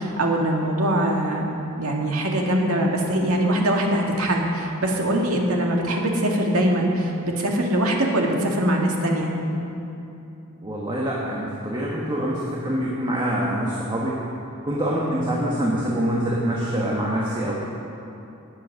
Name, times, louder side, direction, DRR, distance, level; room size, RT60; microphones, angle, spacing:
voice 1, 0.0-1.5 1.8-9.3, right 1 dB, 80° right, 0 dB, 2.1 m, -22 dB
voice 2, 10.6-14.2 14.6-17.5, right 1 dB, 20° right, -5 dB, 1.7 m, -25 dB
17.5 x 8.3 x 6.6 m, 2.8 s
head